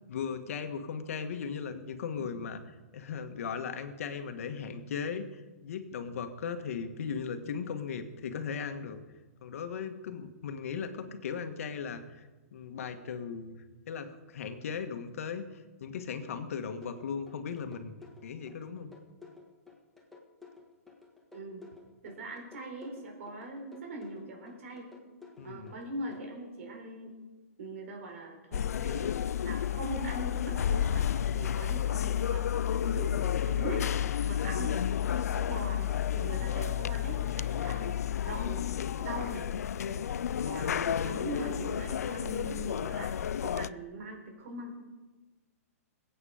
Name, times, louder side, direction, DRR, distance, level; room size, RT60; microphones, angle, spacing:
voice 1, 0.1-2.6 2.9-9.0 9.4-13.5 13.9-17.9 18.2-18.9 25.4-25.7 36.3-36.6, left 6 dB, 65° left, 8 dB, 1.6 m, -37 dB
sound 1, 16.8-26.2, left 5 dB, ahead, 1.7 m, -53 dB
voice 2, 21.3-21.6 22.0-24.9 25.4-27.1 27.6-29.2 29.4-32.4 32.8-33.8 34.2-37.9 38.2-38.7 39.0-39.5 39.8-40.1 40.5-44.8, right 2 dB, 60° right, 2 dB, 4.3 m, -41 dB
sound 2, 28.5-43.7, left 10 dB, 85° left, 0.4 m, -31 dB
21.0 x 8.8 x 5.1 m, 1.2 s
hypercardioid pair, 150°, 8 cm